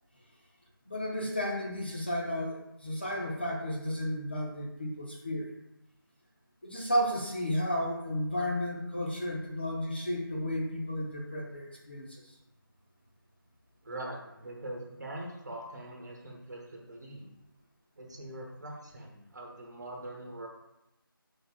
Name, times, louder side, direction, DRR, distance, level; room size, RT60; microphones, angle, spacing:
voice 1, 0.9-5.5 6.6-12.2, equal, 25° left, -2 dB, 0.5 m, -33 dB
voice 2, 13.8-17.3 18.0-20.5, right 1 dB, 50° right, 0 dB, 1.0 m, -42 dB
4.0 x 2.7 x 3.6 m, 0.90 s
figure-of-eight pair, 170°, 12 cm